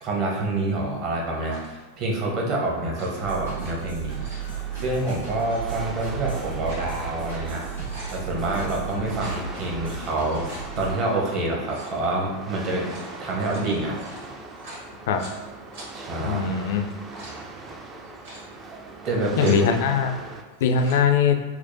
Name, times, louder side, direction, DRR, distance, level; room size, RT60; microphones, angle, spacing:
voice 1, 0.0-4.2 4.7-7.6 8.1-14.0 15.9-16.6 19.0-19.6, right 2 dB, 40° right, -2 dB, 0.8 m, -27 dB
sound 1, 1.5-1.8 2.8-3.7 4.0-4.5 5.3-5.6 6.3-6.9 7.3-7.4 7.7-8.2 9.0-9.4 10.1-10.6 11.6-12.0 12.7-15.4 15.7-15.9 16.8-17.4 18.0-18.4 19.0-19.7 20.5-21.0, right 1 dB, 55° right, 1.1 m, -44 dB
sound 2, 3.2-10.9, right 7 dB, 85° right, 1.4 m, -34 dB
sound 3, 4.1-20.4, right 3 dB, 20° right, 0.3 m, -40 dB
voice 2, 16.2-16.9 19.4-20.1 20.6-21.4, left 6 dB, 55° left, 6 dB, 0.3 m, -21 dB
4.5 x 2.1 x 2.6 m, 1.3 s
figure-of-eight pair, 90°, 0 cm